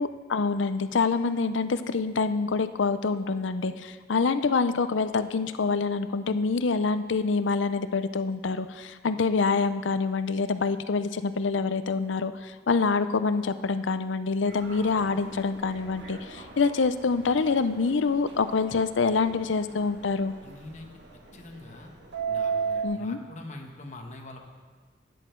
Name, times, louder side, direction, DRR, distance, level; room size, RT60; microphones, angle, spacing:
voice 1, 0.0-20.3 22.8-23.2, left 4 dB, 90° left, 12 dB, 0.6 m, -26 dB
Subway metro underground, 14.4-22.8, right 6 dB, 65° right, 1.7 m, -37 dB
voice 2, 20.4-20.9 21.3-21.9 22.3-24.4, left 2 dB, 40° left, 2 dB, 1.3 m, -43 dB
13.5 x 10.0 x 4.5 m, 1.5 s
head